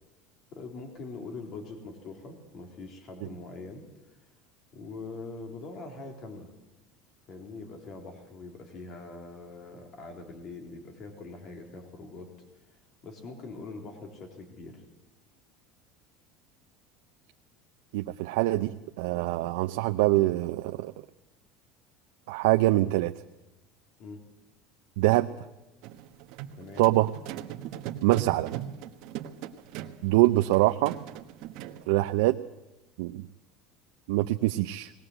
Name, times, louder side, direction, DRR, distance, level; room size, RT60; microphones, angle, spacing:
voice 1, 0.5-3.8 4.7-6.5 7.3-12.3 13.0-14.8 24.0-24.2 26.6-27.0, left 3 dB, 35° left, 4 dB, 3.7 m, -43 dB
voice 2, 17.9-20.9 22.3-23.1 25.0-25.3 26.8-27.1 28.0-28.5 30.0-30.9 31.9-32.4 33.0-33.3 34.1-34.9, right 18 dB, 80° right, 7 dB, 0.7 m, -24 dB
sound 1, 25.8-31.9, right 11 dB, 55° right, 1.3 m, -40 dB
20.0 x 18.5 x 8.0 m, 1.0 s
cardioid pair, 175°, 0 cm